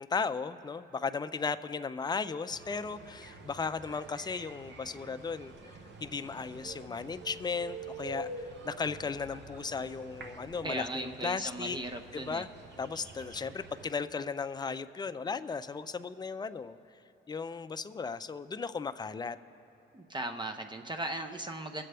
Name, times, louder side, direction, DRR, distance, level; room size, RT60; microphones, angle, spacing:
voice 1, 0.0-11.8 12.1-12.5 12.8-16.8 17.3-19.4, left 5 dB, 20° left, 11 dB, 0.4 m, -36 dB
sound 1, 2.5-13.9, right 2 dB, 60° right, 1.0 m, -47 dB
voice 2, 10.6-12.4 19.9-21.8, right 1 dB, 20° right, 5 dB, 0.6 m, -37 dB
22.5 x 7.6 x 3.4 m, 2.8 s
cardioid pair, 90°, 20 cm